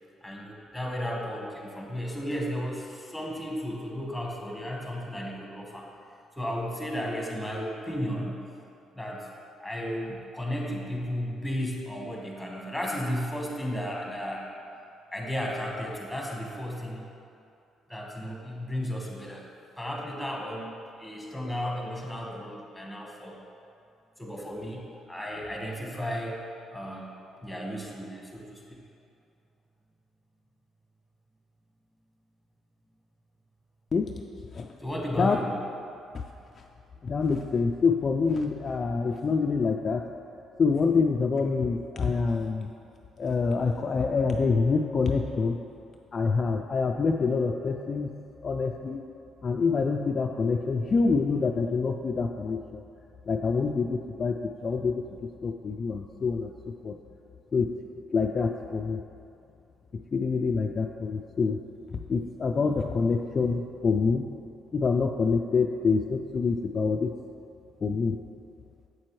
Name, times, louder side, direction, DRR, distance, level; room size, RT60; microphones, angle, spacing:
voice 1, 0.2-5.9 6.4-8.4 8.9-9.3 9.6-14.5 15.1-17.1 17.9-19.5 19.8-20.7 21.0-23.4 24.2-26.4 26.7-27.1 27.4-28.6 34.8-35.5, equal, 5° left, -1 dB, 1.3 m, -34 dB
voice 2, 33.9-34.2 34.5-34.7 35.2-35.4 36.1-36.2 36.6-36.7 37.0-40.1 40.6-42.7 43.2-45.6 46.1-48.1 48.4-49.0 49.4-52.8 53.3-57.0 57.5-57.8 58.1-59.0 60.1-61.6 62.1-64.3 64.7-67.1 67.8-68.2, left 4 dB, 40° left, 2 dB, 0.3 m, -26 dB
7.5 x 7.4 x 3.1 m, 2.6 s
cardioid pair, 105°, 0 cm